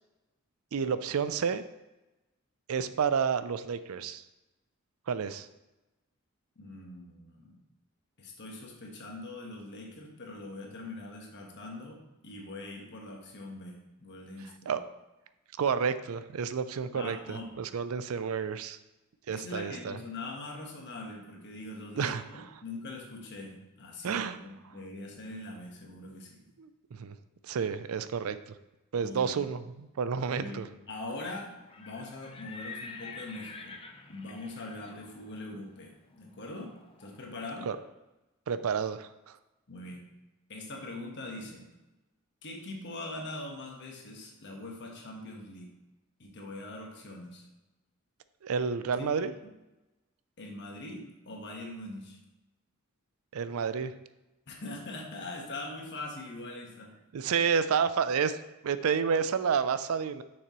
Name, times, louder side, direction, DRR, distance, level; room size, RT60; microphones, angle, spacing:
voice 1, 0.7-1.6 2.7-4.2 5.1-5.5 14.7-14.8 15.6-18.8 19.3-20.0 22.0-22.2 24.0-24.4 26.6-27.2 27.4-28.4 28.9-29.6 30.0-30.7 37.7-37.8 38.5-39.4 48.4-49.3 53.3-53.9 57.1-58.4 58.6-60.2, right 6 dB, 75° right, 13 dB, 0.4 m, -30 dB
voice 2, 6.6-7.6 8.2-14.8 16.9-17.5 19.3-26.4 29.0-29.4 30.3-33.8 34.1-37.7 39.7-40.1 40.5-41.7 42.4-45.7 46.2-47.5 49.0-49.3 50.4-52.2 54.5-57.0, left 2 dB, 55° left, 0 dB, 1.3 m, -42 dB
Livestock farm animals working animals, 31.5-37.4, left 4 dB, 25° left, 0.6 m, -48 dB
6.6 x 6.2 x 3.0 m, 1.0 s
head